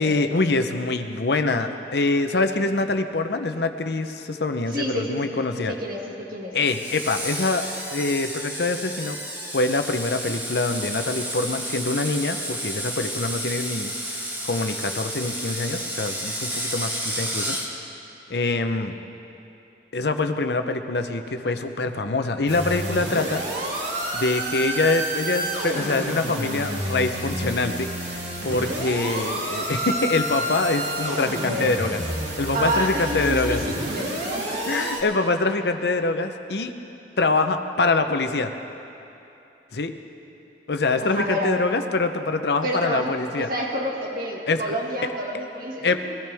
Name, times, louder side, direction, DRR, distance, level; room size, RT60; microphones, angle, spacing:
voice 1, 0.0-5.7 6.5-7.6 7.9-9.2 9.5-13.9 14.4-17.6 18.3-19.0 19.9-23.4 24.1-32.0 32.4-33.6 34.7-36.7 37.2-38.5 39.7-39.9 40.7-43.5 44.5-44.8 45.8-45.9, left 3 dB, 65° left, 7 dB, 0.8 m, -24 dB
voice 2, 4.7-6.5 31.3-31.7 32.5-34.6 41.0-41.6 42.6-46.0, equal, 55° right, -2 dB, 2.1 m, -29 dB
Screech, 6.6-17.7, equal, 10° right, 1.4 m, -31 dB
sound 1, 22.5-35.0, right 1 dB, 85° right, 2.6 m, -29 dB
21.0 x 14.0 x 3.5 m, 2.9 s
head